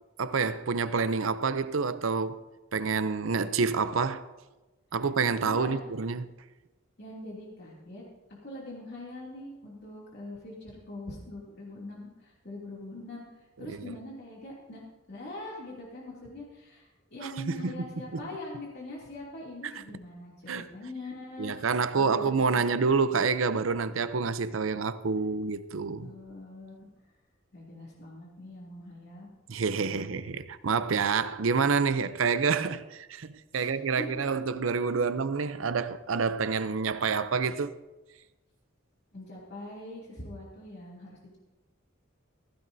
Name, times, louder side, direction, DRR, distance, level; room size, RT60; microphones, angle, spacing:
voice 1, 0.2-2.4 2.7-4.3 4.9-6.3 13.7-13.8 17.2-17.9 18.1-18.2 20.5-20.7 21.4-26.1 29.5-37.8, right 5 dB, 75° right, 0.6 m, -28 dB
voice 2, 5.4-5.8 7.0-8.0 8.4-14.8 15.1-22.8 26.0-26.9 27.5-29.3 29.7-30.1 33.5-34.1 34.9-35.0 39.1-41.4, left 1 dB, 55° left, 2.7 m, -43 dB
15.0 x 15.0 x 2.7 m
head